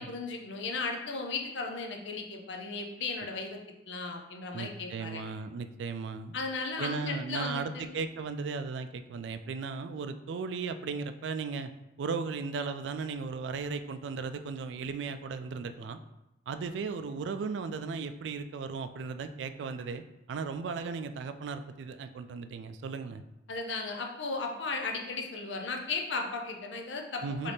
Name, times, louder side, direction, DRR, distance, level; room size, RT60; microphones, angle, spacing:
voice 1, 0.0-3.6 3.9-5.2 6.3-7.9 23.5-27.5, left 3 dB, 85° left, 3 dB, 0.6 m, -36 dB
voice 2, 4.5-6.3 6.8-11.7 12.0-16.0 16.5-23.2 27.2-27.5, right 4 dB, 80° right, 9 dB, 0.3 m, -36 dB
4.0 x 3.2 x 3.3 m, 0.92 s
head